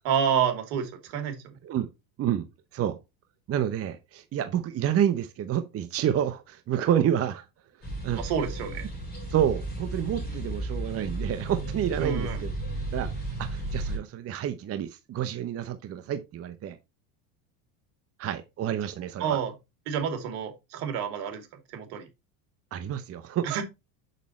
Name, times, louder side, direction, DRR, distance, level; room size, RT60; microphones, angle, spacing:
voice 1, 0.0-1.4 8.2-8.9 12.0-12.4 19.2-19.5 19.9-22.1 23.4-23.6, right 7 dB, 70° right, 2.8 m, -29 dB
voice 2, 3.5-7.5 8.0-8.2 9.3-12.5 12.9-13.1 13.4-16.8 18.2-19.4 22.7-23.6, right 10 dB, 30° right, 0.8 m, -29 dB
sound 1, 7.8-14.0, right 2 dB, 20° left, 5.3 m, -34 dB
6.9 x 6.7 x 3.1 m
supercardioid pair, 120°, 49 cm